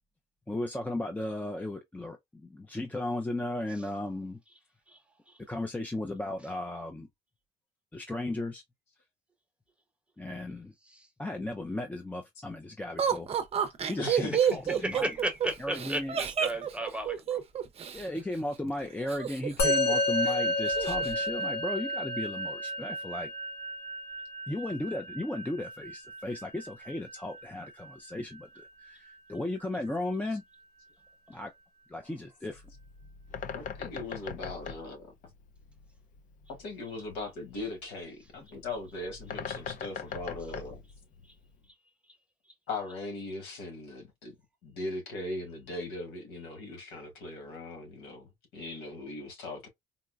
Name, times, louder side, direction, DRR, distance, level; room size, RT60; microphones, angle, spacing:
voice 1, 0.5-4.4 5.5-7.1 7.9-8.6 10.2-10.7 11.2-13.3 13.9-15.1 15.6-16.2 17.9-23.3 24.5-30.4 31.3-31.5 31.9-32.6, left 1 dB, 10° left, 0.5 m, -35 dB
Laughter, 13.0-18.0 19.1-19.9 20.2-20.3 20.7-21.1, right 8 dB, 35° right, 0.6 m, -29 dB
voice 2, 14.0-14.6 33.5-35.1 36.5-40.8 42.7-44.4 44.6-49.7, left 2 dB, 90° left, 1.6 m, -39 dB
voice 3, 14.8-17.4, right 1 dB, 5° right, 1.1 m, -34 dB
Musical instrument, 19.6-29.1, left 1 dB, 75° left, 1.6 m, -32 dB
Bird, 32.5-41.7, left 6 dB, 50° left, 0.6 m, -42 dB
4.0 x 2.1 x 2.4 m
cardioid pair, 110°, 17 cm